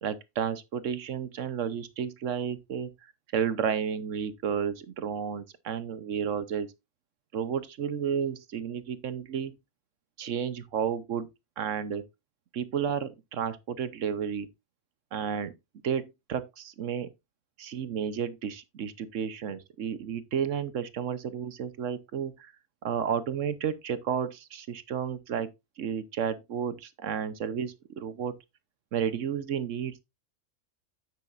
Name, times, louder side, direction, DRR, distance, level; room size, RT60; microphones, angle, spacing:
voice 1, 0.0-2.9 3.3-6.7 7.3-9.6 10.2-12.0 12.5-14.5 15.1-15.5 15.8-16.0 16.3-17.1 17.6-22.5 22.8-25.5 25.8-28.4 28.9-30.0, right 8 dB, 65° right, 1.1 m, -32 dB
9.5 x 7.4 x 2.5 m
omnidirectional pair, 1.4 m